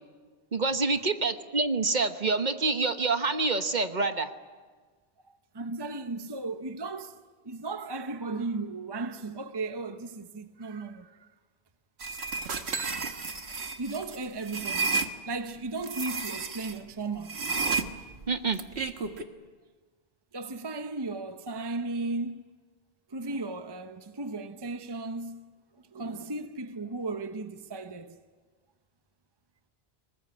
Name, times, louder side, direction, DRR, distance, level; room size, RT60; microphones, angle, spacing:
voice 1, 0.5-4.3 18.3-18.6, right 3 dB, 45° right, 1.2 m, -27 dB
voice 2, 5.3-7.2 7.4-11.3 12.6-13.4 13.8-17.4 20.3-22.4 23.1-28.2, right 3 dB, 25° right, 0.8 m, -36 dB
sound 1, 12.0-15.1 15.8-16.8 17.3-19.2, right 4 dB, 85° right, 1.6 m, -32 dB
23.5 x 20.5 x 9.7 m
omnidirectional pair, 1.1 m